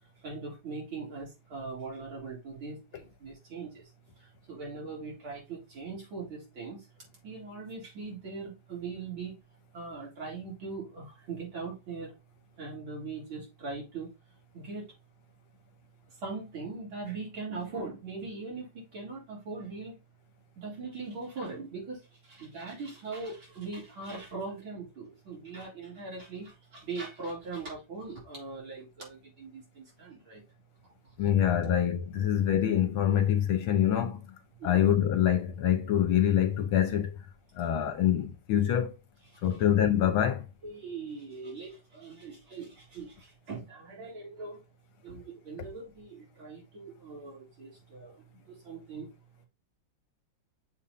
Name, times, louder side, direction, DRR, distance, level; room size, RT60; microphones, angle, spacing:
voice 1, 0.2-3.8 4.2-6.9 7.2-9.4 9.7-12.2 12.6-14.1 14.5-14.9 16.1-20.0 20.6-30.4 31.2-31.3 34.6-34.9 39.3-39.7 40.6-44.6 45.0-49.1, right 4 dB, 65° right, 4.3 m, -41 dB
voice 2, 31.2-34.2 34.6-37.1 37.6-38.9 39.4-40.4, left 10 dB, 70° left, 1.7 m, -25 dB
7.3 x 3.6 x 4.1 m
omnidirectional pair, 2.4 m